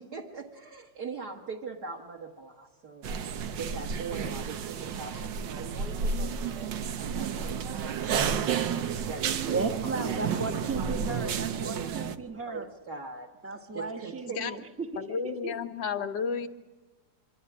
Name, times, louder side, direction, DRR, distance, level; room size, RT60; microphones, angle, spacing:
voice 1, 0.0-8.5 9.0-9.7 10.0-10.6 11.2-12.2 12.5-13.3 13.7-14.4, right 4 dB, 60° right, -2 dB, 2.3 m, -42 dB
sound 1, 3.0-12.2, right 7 dB, 85° right, 1.6 m, -31 dB
voice 2, 9.4-12.7 13.4-15.5, right 3 dB, 10° right, 6 dB, 0.8 m, -35 dB
voice 3, 15.0-16.5, left 6 dB, 80° left, 7 dB, 1.8 m, -32 dB
25.0 x 13.0 x 9.6 m, 1.3 s
omnidirectional pair, 2.0 m